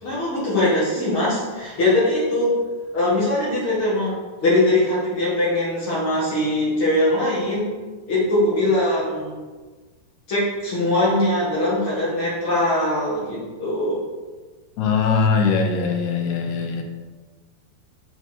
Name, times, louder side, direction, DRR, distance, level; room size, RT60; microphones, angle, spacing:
voice 1, 0.0-2.6 2.9-4.2 4.4-7.7 8.1-9.3 10.3-14.0, left 1 dB, 45° left, -7 dB, 1.9 m, -21 dB
voice 2, 14.8-16.8, left 5 dB, 85° left, 2 dB, 2.9 m, -21 dB
6.8 x 4.6 x 4.4 m, 1.3 s
omnidirectional pair, 4.5 m